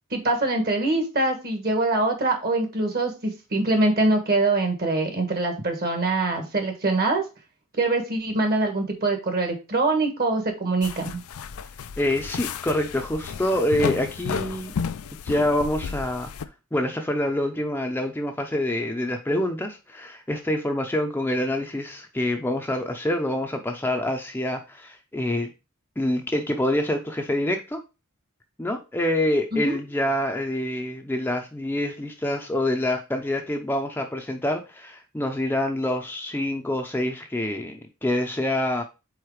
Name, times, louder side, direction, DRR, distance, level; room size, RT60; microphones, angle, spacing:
voice 1, 0.1-7.2 7.8-11.2 29.5-29.8, right 2 dB, 45° right, 5 dB, 1.5 m, -24 dB
sound 1, 10.8-16.5, left 6 dB, 85° left, 0.5 m, -33 dB
voice 2, 12.0-14.7 15.2-16.3 16.7-25.5 26.0-27.8 28.6-38.8, left 1 dB, 10° left, 4 dB, 0.6 m, -26 dB
4.8 x 4.1 x 4.8 m, 0.28 s
head